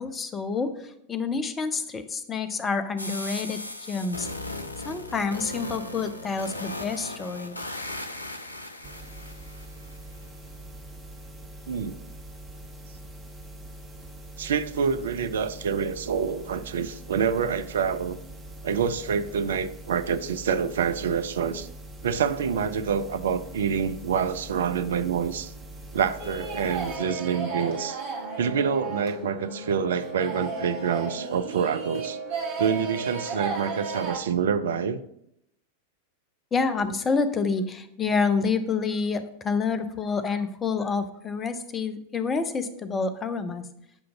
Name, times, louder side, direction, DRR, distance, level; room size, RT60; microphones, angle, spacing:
voice 1, 0.0-3.6 3.9-4.3 4.8-7.6 36.5-43.6, left 4 dB, 20° left, 11 dB, 0.5 m, -28 dB
sound 1, 3.0-10.0, left 2 dB, 80° left, 0.4 m, -37 dB
sound 2, 8.8-27.0, right 1 dB, 15° right, 1.1 m, -43 dB
voice 2, 14.4-18.2 18.6-21.7 22.0-25.5 25.9-28.0 28.4-32.2 32.6-35.0, right 7 dB, 60° right, 12 dB, 0.4 m, -27 dB
sound 3, 26.2-34.2, right 4 dB, 45° right, 1.3 m, -34 dB
6.8 x 2.5 x 5.6 m, 0.76 s
figure-of-eight pair, 90°, 0 cm